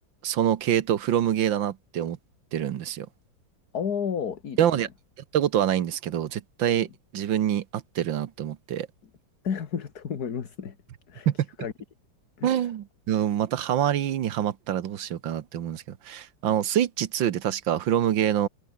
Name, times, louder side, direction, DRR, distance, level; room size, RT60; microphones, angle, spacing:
voice 1, 0.2-2.2 2.5-3.1 4.6-4.9 5.3-8.9 11.3-11.4 12.4-18.5, right 10 dB, 70° right, 1.7 m, -26 dB
voice 2, 3.7-4.6 9.4-10.8 11.1-11.3 11.6-11.7 12.4-12.7, left 7 dB, 50° left, 2.1 m, -31 dB
omnidirectional pair, 2.2 m